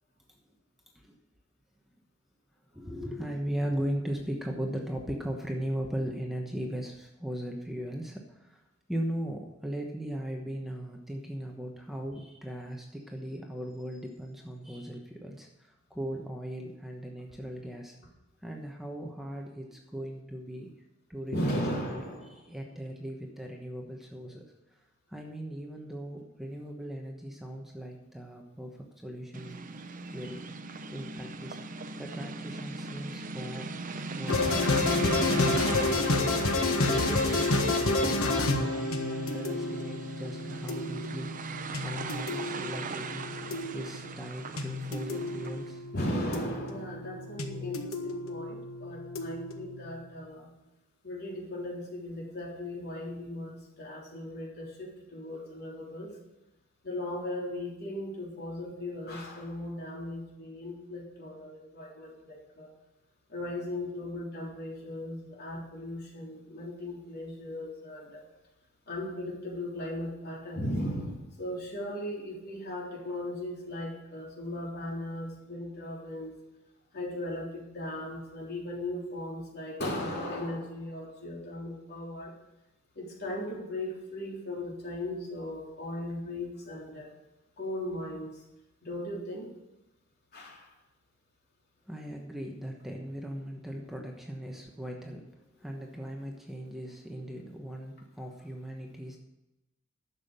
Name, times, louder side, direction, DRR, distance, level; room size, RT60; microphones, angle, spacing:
voice 1, 2.7-8.6 8.9-18.0 18.4-20.7 21.1-24.8 25.1-29.7 30.1-30.5 30.9-31.6 32.0-36.5 37.0-43.4 43.7-45.9 91.9-99.2, equal, ahead, 1 dB, 1.1 m, -38 dB
voice 2, 21.3-22.3 34.6-34.8 45.9-50.5 51.0-56.1 56.8-62.7 63.3-68.2 68.9-76.3 76.9-82.3 83.0-87.1 87.6-88.4 88.8-89.5 90.3-90.7, left 1 dB, 50° left, -2 dB, 3.4 m, -37 dB
sound 1, 29.3-45.8, right 4 dB, 40° right, 0.7 m, -38 dB
sound 2, 34.3-50.1, left 2 dB, 80° left, 1.4 m, -30 dB
11.5 x 7.3 x 6.7 m, 0.95 s
head